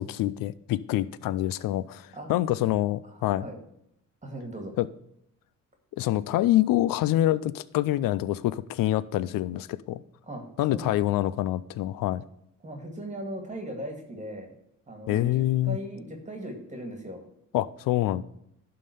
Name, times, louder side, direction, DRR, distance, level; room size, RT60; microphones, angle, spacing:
voice 1, 0.0-3.5 4.8-4.9 5.9-10.0 10.6-12.2 15.1-15.8 17.5-18.2, left 14 dB, 80° left, 17 dB, 0.5 m, -26 dB
voice 2, 3.0-3.6 4.2-4.8 10.3-10.9 12.6-14.5 14.9-17.2, right 1 dB, 20° right, 3 dB, 2.0 m, -38 dB
11.5 x 3.9 x 6.7 m, 0.76 s
cardioid pair, 85°, 33 cm